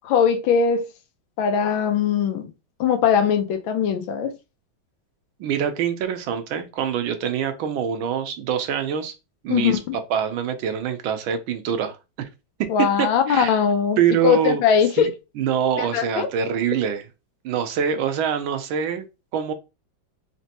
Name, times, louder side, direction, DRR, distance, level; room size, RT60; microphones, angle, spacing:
voice 1, 0.0-0.8 1.4-2.5 2.8-4.3 9.5-10.0 12.7-15.1 15.8-16.3, left 7 dB, 90° left, 1.5 m, -20 dB
voice 2, 5.4-9.1 9.4-12.3 12.6-12.7 13.0-13.5 14.0-14.6 15.0-15.1 15.4-17.0 17.4-19.0 19.3-19.5, right 8 dB, 80° right, 1.5 m, -25 dB
4.3 x 2.9 x 2.9 m
omnidirectional pair, 2.2 m